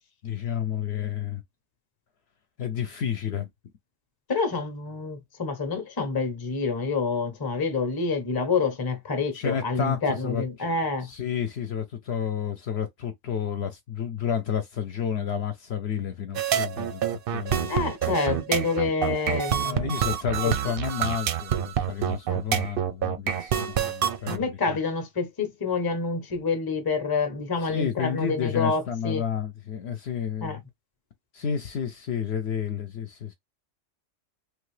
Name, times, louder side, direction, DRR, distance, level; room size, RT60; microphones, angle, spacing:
voice 1, 0.2-1.4 2.6-3.5 9.3-10.7 11.0-17.7 19.6-24.5 27.7-30.6 31.3-33.3, left 8 dB, 65° left, 0.8 m, -31 dB
voice 2, 4.3-11.1 17.7-19.9 20.4-20.5 22.2-22.4 24.3-29.2 30.4-30.6, left 4 dB, 25° left, 0.6 m, -27 dB
sound 1, 16.3-24.4, right 9 dB, 60° right, 0.6 m, -27 dB
3.1 x 2.3 x 3.2 m
omnidirectional pair, 1.3 m